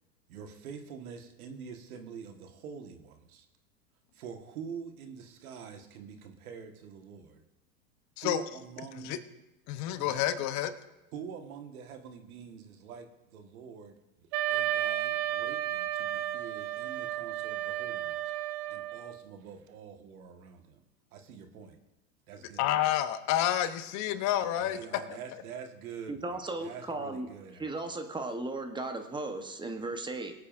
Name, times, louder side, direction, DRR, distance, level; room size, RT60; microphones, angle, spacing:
voice 1, 0.3-3.4 4.1-7.4 8.2-9.2 10.0-10.2 11.1-18.3 18.7-20.8 21.1-21.8 22.3-22.7 24.5-27.7, right 6 dB, 70° right, 6 dB, 1.5 m, -46 dB
voice 2, 9.7-10.7 22.6-24.8, left 12 dB, 40° left, 11 dB, 0.8 m, -29 dB
Wind instrument woodwind instrument, 14.3-19.2, right 13 dB, 50° right, 0.7 m, -33 dB
voice 3, 26.1-27.3 27.6-30.3, right 2 dB, 10° right, 6 dB, 0.9 m, -36 dB
21.5 x 8.4 x 2.5 m, 0.96 s
hypercardioid pair, 110°, 44 cm